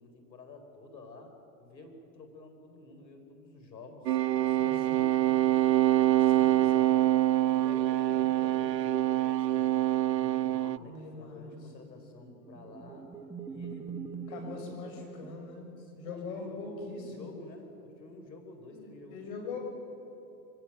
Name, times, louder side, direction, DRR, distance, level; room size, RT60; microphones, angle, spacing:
voice 1, 0.0-1.3 1.6-4.2 4.6-5.1 6.2-7.1 7.4-9.9 10.2-13.1 13.5-15.2 15.8-19.6, left 2 dB, 85° left, 5 dB, 4.6 m, -50 dB
sound 1, 4.1-10.8, right 13 dB, 80° right, 0.7 m, -25 dB
voice 2, 4.5-5.0 10.8-11.9 14.3-17.3 18.7-19.6, left 4 dB, 60° left, 2 dB, 7.1 m, -42 dB
sound 2, 11.9-15.9, right 6 dB, 5° right, 1.0 m, -43 dB
24.0 x 17.0 x 9.1 m, 3.0 s
hypercardioid pair, 115°, 50 cm